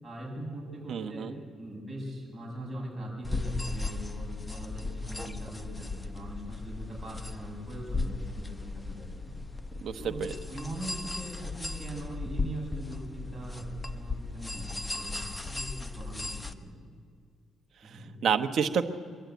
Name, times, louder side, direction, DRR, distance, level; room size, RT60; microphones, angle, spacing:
voice 1, 0.0-1.3 1.6-9.3 10.0-16.3 16.6-16.8 17.8-18.1, right 1 dB, 15° right, -3 dB, 7.6 m, -41 dB
voice 2, 0.9-1.4 9.8-10.3 17.8-18.8, right 7 dB, 65° right, 7 dB, 1.1 m, -29 dB
sound 1, 3.2-16.5, left 3 dB, 10° left, 1.0 m, -37 dB
24.0 x 12.0 x 9.3 m, 2.1 s
cardioid pair, 90°, 0 cm